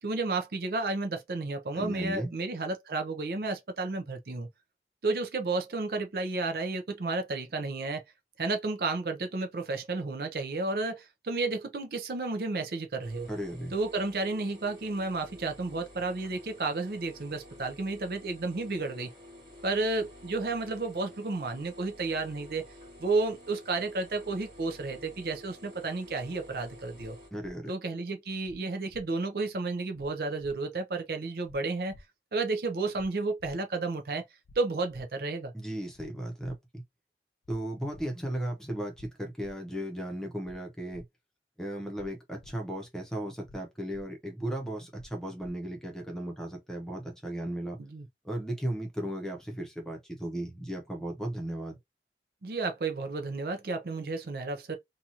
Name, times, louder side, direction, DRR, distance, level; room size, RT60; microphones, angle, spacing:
voice 1, 0.0-4.5 5.0-8.0 8.4-13.3 13.7-19.1 19.6-22.7 23.0-27.2 27.7-31.9 32.3-34.2 34.6-35.5 47.8-48.1 52.4-54.8, right 3 dB, 55° right, 0.5 m, -32 dB
voice 2, 1.7-2.3 13.3-13.8 27.3-27.7 35.5-36.8 37.5-41.0 41.6-47.8 48.2-51.8, right 1 dB, 5° left, 0.8 m, -36 dB
sound 1, 13.0-27.3, left 1 dB, 25° right, 1.5 m, -51 dB
sound 2, 27.4-27.5 28.4-28.6 28.9-29.0 29.9-30.1 30.4-30.5 31.4-31.6 31.9-32.0 32.9-33.1 33.4-33.5 34.4-34.6 34.9-35.0 35.9-36.1 36.4-36.5 37.4-37.6 37.9-38.0 38.9-39.1 39.4-39.5 40.4-40.6 40.9-41.0 41.9-42.1 42.4-42.5 43.4-43.6 43.9-44.0 44.9-45.1 45.4-45.5, left 1 dB, 45° left, 0.4 m, -52 dB
2.8 x 2.4 x 2.7 m
head